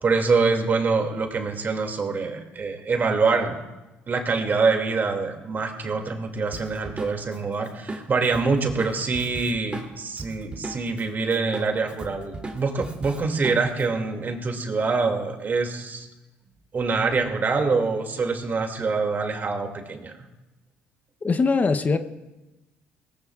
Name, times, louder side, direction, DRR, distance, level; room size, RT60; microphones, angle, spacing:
voice 1, 0.0-3.6 4.1-16.1 16.7-20.1, right 4 dB, 40° right, 4 dB, 2.6 m, -25 dB
Drum kit, 6.5-11.0 11.3-13.9, right 2 dB, 20° right, 3.0 m, -37 dB
voice 2, 21.2-22.0, left 4 dB, 35° left, 9 dB, 0.9 m, -21 dB
23.5 x 18.5 x 2.5 m, 1.1 s
supercardioid pair, 70°, 5 cm